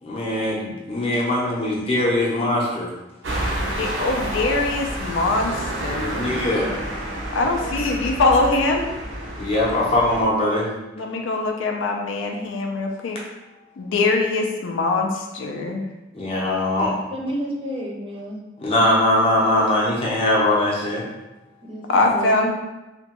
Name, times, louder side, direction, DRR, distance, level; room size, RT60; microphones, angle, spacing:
voice 1, 0.0-2.9 5.9-6.8 9.4-10.7 16.1-16.9 18.6-21.0, left 1 dB, 30° left, -4 dB, 0.6 m, -21 dB
sound 1, 3.2-10.2, right 1 dB, 85° right, 0.7 m, -29 dB
voice 2, 3.6-5.6 5.8-6.2 7.3-8.9 11.0-13.2 13.8-15.8 21.9-22.5, left 3 dB, 85° left, 2 dB, 0.4 m, -22 dB
voice 3, 17.1-18.4 21.6-22.5, equal, 30° right, -2 dB, 0.5 m, -31 dB
2.8 x 2.2 x 2.9 m, 1.0 s
head